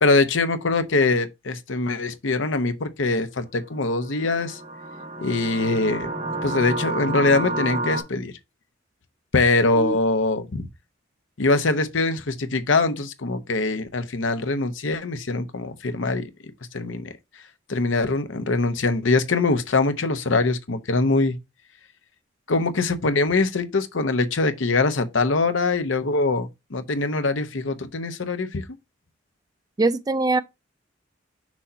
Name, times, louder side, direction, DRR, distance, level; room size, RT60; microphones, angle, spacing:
voice 1, 0.0-4.6 5.2-6.1 6.4-8.3 9.3-10.7 11.4-16.3 16.7-17.1 17.7-21.4 22.5-28.6, left 3 dB, 75° left, 0.8 m, -23 dB
sound 1, 4.0-8.0, right 2 dB, 35° right, 1.6 m, -30 dB
voice 2, 29.8-30.4, right 3 dB, 20° right, 0.4 m, -22 dB
6.2 x 2.8 x 5.5 m
head